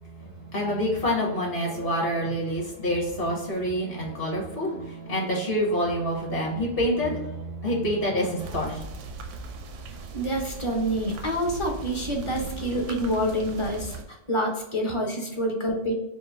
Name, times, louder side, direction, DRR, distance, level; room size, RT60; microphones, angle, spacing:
voice 1, 0.0-8.8, equal, 55° left, -3 dB, 1.5 m, -27 dB
sound 1, 8.4-14.0, right 3 dB, 85° right, 0.9 m, -38 dB
voice 2, 10.1-15.9, equal, 30° left, 1 dB, 0.7 m, -27 dB
4.9 x 2.2 x 3.5 m, 0.88 s
omnidirectional pair, 1.2 m